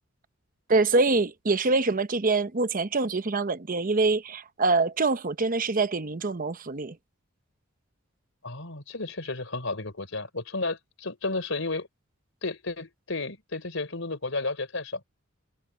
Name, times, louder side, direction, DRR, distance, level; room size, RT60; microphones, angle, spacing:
voice 1, 0.7-6.9, right 3 dB, 40° right, 0.9 m, -25 dB
voice 2, 8.4-11.9 12.4-15.0, left 3 dB, 65° left, 4.6 m, -32 dB
head